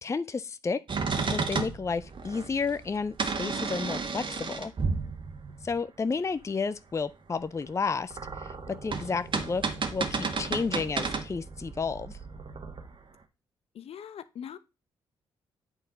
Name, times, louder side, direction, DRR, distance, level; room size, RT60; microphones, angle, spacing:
voice 1, 0.0-0.8 1.3-4.7 5.6-9.7 9.9-12.2, left 4 dB, 25° left, 0.5 m, -31 dB
sound 1, 0.9-5.8 7.8-12.9, right 4 dB, 50° right, 1.6 m, -33 dB
voice 2, 13.7-14.6, left 8 dB, 60° left, 0.7 m, -41 dB
8.8 x 4.2 x 4.0 m
hypercardioid pair, 45°, 11 cm